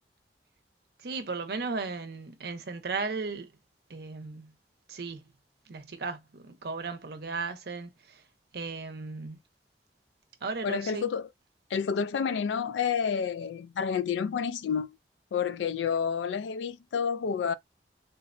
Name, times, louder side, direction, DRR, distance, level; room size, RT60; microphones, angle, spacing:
voice 1, 1.0-3.5 3.9-4.5 4.9-5.2 5.7-8.2 8.5-9.4 10.4-11.0, right 4 dB, 60° right, 0.6 m, -36 dB
voice 2, 10.6-11.3 11.7-15.0 15.3-17.5, left 6 dB, 85° left, 0.3 m, -29 dB
3.8 x 2.1 x 2.5 m
head